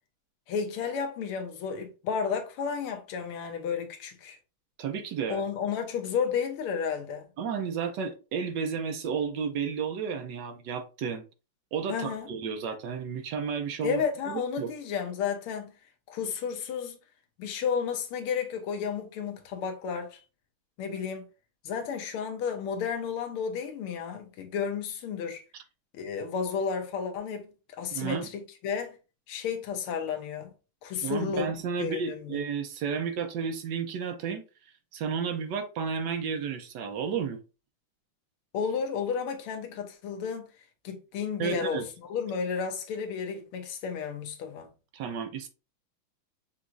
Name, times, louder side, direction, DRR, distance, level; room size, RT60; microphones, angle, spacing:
voice 1, 0.5-4.4 5.3-7.2 11.9-12.3 13.8-15.7 16.1-17.0 17.4-20.2 20.8-21.3 21.6-25.4 25.9-29.0 29.3-30.5 30.8-31.5 31.8-32.4 38.5-40.5 40.8-44.7, left 6 dB, 80° left, 1.7 m, -32 dB
voice 2, 4.8-5.4 7.4-11.2 11.7-14.7 27.9-28.3 31.0-34.4 34.9-37.4 41.4-41.8 44.9-45.5, right 6 dB, 70° right, 1.1 m, -32 dB
5.9 x 3.0 x 2.5 m
omnidirectional pair, 2.4 m